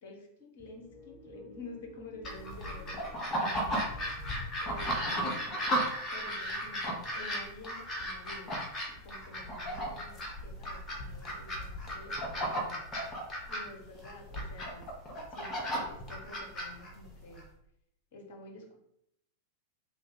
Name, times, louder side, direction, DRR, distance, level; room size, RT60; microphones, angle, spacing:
voice 1, 0.0-3.9 4.2-5.2 6.1-8.6 8.9-12.8 13.5-14.9 15.3-17.4 18.1-18.8, left 2 dB, 50° left, 0 dB, 1.0 m, -50 dB
sound 1, 0.6-5.9, left 2 dB, 30° right, 0.9 m, -55 dB
sound 2, 2.2-17.4, equal, 25° left, 1.0 m, -35 dB
3.3 x 2.5 x 3.8 m, 0.74 s
figure-of-eight pair, 90°, 0 cm